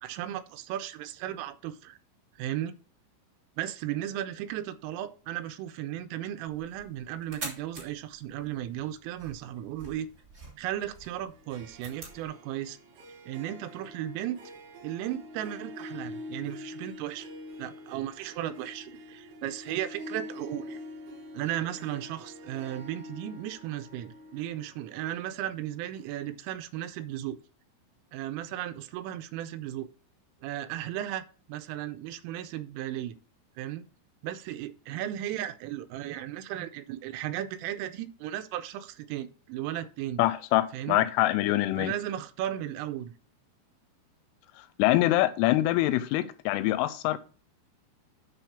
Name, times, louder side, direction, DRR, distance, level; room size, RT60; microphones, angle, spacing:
voice 1, 0.0-2.0 2.4-2.7 3.6-10.1 10.6-12.8 13.3-14.4 14.8-17.3 17.6-20.8 21.3-27.4 28.1-29.9 30.4-33.2 33.6-33.9 34.2-40.2 40.7-41.1 41.8-43.1, right 12 dB, 85° right, 3.2 m, -35 dB
sound 1, 6.5-12.3, right 2 dB, 25° right, 1.8 m, -46 dB
Harp, 11.3-26.7, left 1 dB, 65° right, 3.8 m, -45 dB
voice 2, 40.2-41.9 44.8-47.2, left 15 dB, 85° left, 3.0 m, -24 dB
10.0 x 3.5 x 5.7 m
omnidirectional pair, 5.8 m